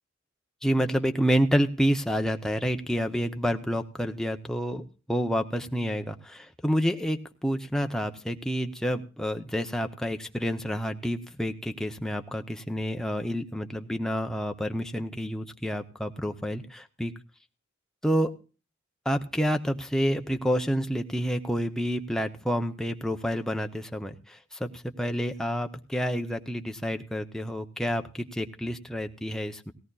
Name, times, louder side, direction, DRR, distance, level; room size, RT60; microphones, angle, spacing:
voice 1, 0.6-17.1 18.0-18.3 19.1-29.7, equal, 5° left, 6 dB, 0.6 m, -29 dB
17.5 x 16.5 x 2.3 m, 0.35 s
head